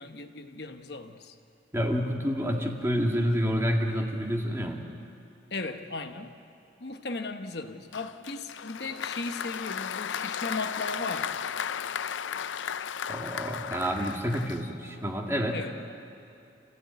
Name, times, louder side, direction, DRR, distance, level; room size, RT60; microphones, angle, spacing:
voice 1, 0.0-1.3 5.5-6.3 6.8-11.4 15.5-15.9, left 3 dB, 60° left, 1.1 m, -37 dB
voice 2, 1.7-4.9 13.1-15.6, equal, 15° right, 2.0 m, -28 dB
Applause, 7.9-15.0, left 8 dB, 85° left, 0.5 m, -35 dB
28.0 x 16.0 x 9.4 m
head